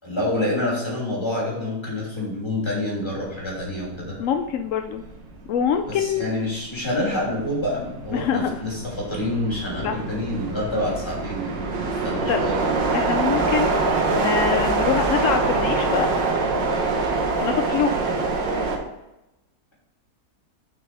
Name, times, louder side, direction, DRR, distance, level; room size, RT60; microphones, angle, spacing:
voice 1, 0.0-4.2 5.9-12.7, left 1 dB, 15° left, -5 dB, 2.9 m, -27 dB
sound 1, 3.8-4.0 4.4-18.8, right 3 dB, 90° right, 1.9 m, -25 dB
voice 2, 4.2-5.0 5.5-6.2 8.1-8.6 9.8-10.0 12.3-12.4 12.9-16.1 17.4-17.9, left 7 dB, 75° left, 6 dB, 0.7 m, -24 dB
7.2 x 6.1 x 4.7 m, 0.94 s
omnidirectional pair, 1.9 m